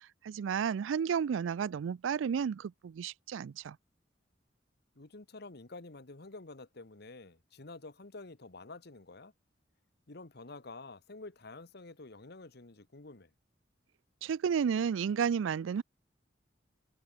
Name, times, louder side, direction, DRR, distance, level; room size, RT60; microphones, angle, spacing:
voice 1, 0.2-3.8 14.2-15.8, right 7 dB, 85° right, 0.4 m, -32 dB
voice 2, 4.9-9.3 10.1-13.3, left 3 dB, 55° left, 1.4 m, -49 dB
head